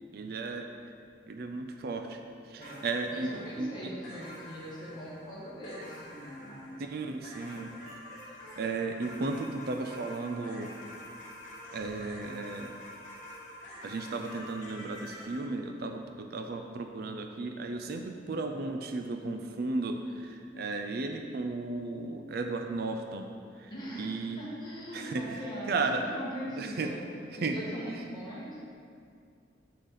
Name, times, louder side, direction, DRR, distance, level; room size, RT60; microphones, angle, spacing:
voice 1, 0.1-0.7 1.3-2.2 2.4-3.3 3.6-3.7 6.8-7.7 8.5-10.7 11.7-12.7 13.8-23.3 23.6-23.7 24.0-24.4 24.9-25.4 25.7-26.1 26.5-26.9 27.4-27.6 27.9-28.0, right 3 dB, 55° right, 5 dB, 0.4 m, -34 dB
voice 2, 2.5-6.8 23.7-27.0 27.4-28.6, equal, 25° left, -7 dB, 1.8 m, -41 dB
sound 1, 2.6-15.4, left 1 dB, 40° left, 1.7 m, -48 dB
7.6 x 6.4 x 4.0 m, 2.3 s
head